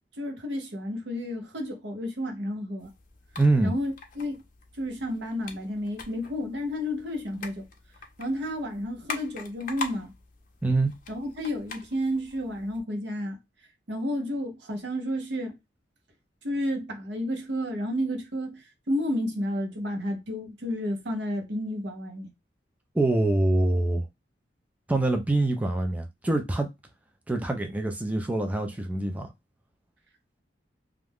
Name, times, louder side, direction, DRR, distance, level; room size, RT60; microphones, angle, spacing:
voice 1, 0.2-2.9 3.6-4.4 4.8-7.6 8.2-10.1 11.1-13.4 13.9-15.6 16.4-22.3, equal, 70° right, 0.8 m, -31 dB
sound 1, 2.8-12.8, left 4 dB, 50° left, 0.6 m, -43 dB
voice 2, 3.4-3.7 10.6-10.9 22.9-24.1 24.9-26.7 27.3-29.3, right 2 dB, 10° right, 0.4 m, -25 dB
2.4 x 2.2 x 3.4 m
head